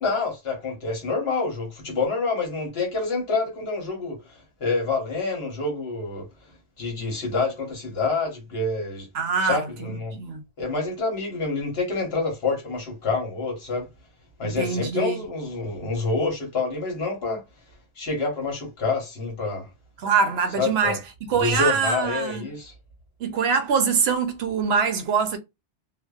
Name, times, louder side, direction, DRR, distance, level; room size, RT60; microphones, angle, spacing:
voice 1, 0.0-6.3 6.8-9.1 9.4-10.1 10.6-13.9 14.4-17.4 18.0-19.7 20.6-21.0 21.3-22.7, left 3 dB, 65° left, 1.2 m, -27 dB
voice 2, 9.1-10.4 14.4-15.2 20.0-22.4 23.2-25.4, right 6 dB, 70° right, 0.8 m, -24 dB
2.5 x 2.1 x 2.3 m
omnidirectional pair, 1.1 m